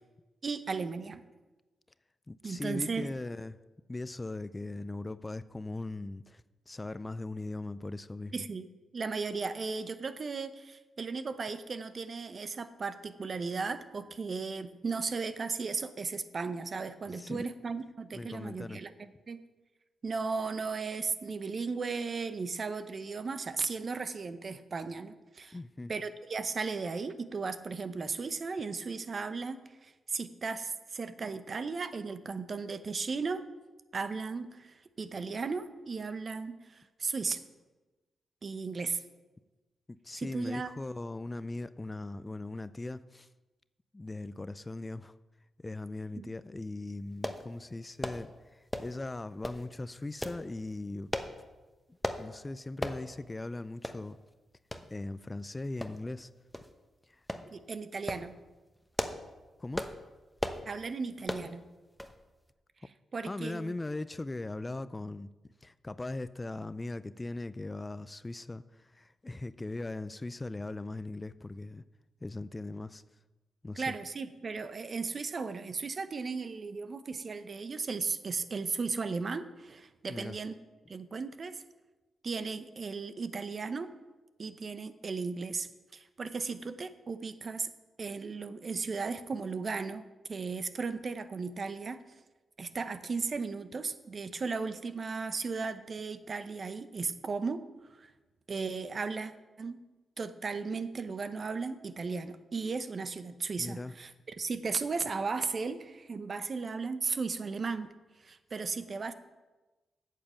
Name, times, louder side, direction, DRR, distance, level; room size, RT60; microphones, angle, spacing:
voice 1, 0.4-1.2 2.4-3.1 8.3-8.7 8.9-19.4 20.0-25.6 25.9-33.4 33.9-37.4 38.4-39.0 40.2-40.7 46.2-46.3 57.5-58.4 60.7-61.7 63.1-63.7 73.8-80.5 80.9-81.6 82.2-83.9 84.4-87.7 88.0-90.0 90.3-92.0 92.6-97.6 97.9-98.1 98.5-99.3 99.6-99.8 100.2-107.9 108.2-109.1, right 4 dB, 50° right, 11 dB, 0.8 m, -36 dB
voice 2, 2.3-3.6 3.9-8.5 17.1-17.5 18.1-18.8 25.5-25.9 39.9-43.3 43.9-45.1 45.6-51.1 52.2-54.2 54.9-56.3 57.1-57.2 59.6-59.9 63.2-65.3 65.6-71.8 72.2-73.0 73.6-73.8 80.1-80.4 103.6-103.9, left 2 dB, 25° left, 15 dB, 0.4 m, -39 dB
sound 1, 47.2-47.4 48.0-48.2 48.7-49.0 49.4-49.6 50.2-50.4 51.1-51.3 52.0-52.2 52.8-53.0 53.4-53.5 53.8-54.0 54.7-54.9 55.8-56.2 56.5-56.7 57.3-57.5 57.9-58.3 58.8-59.3 59.7-60.0 60.4-60.6 61.3-61.5 62.0-62.2 62.5-62.6, left 1 dB, 5° left, 1.0 m, -35 dB
8.6 x 7.6 x 7.0 m, 1.2 s
cardioid pair, 60°, 0 cm